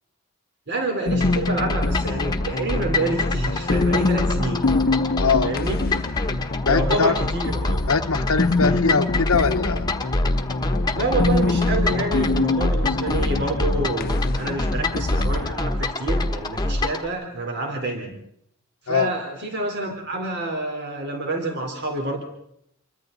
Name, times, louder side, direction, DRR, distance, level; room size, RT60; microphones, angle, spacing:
voice 1, 0.7-4.8 5.4-6.0 6.7-7.8 10.9-18.1 18.9-22.2, right 2 dB, 55° right, 2 dB, 3.6 m, -28 dB
sound 1, 1.1-15.5, left 3 dB, 45° left, 0.7 m, -25 dB
sound 2, 1.2-17.1, left 2 dB, 20° left, 1.3 m, -26 dB
voice 2, 5.2-5.5 6.7-7.1 7.9-9.9 18.9-19.1, left 5 dB, 80° left, 5 dB, 0.9 m, -21 dB
28.0 x 23.5 x 3.9 m, 0.76 s
head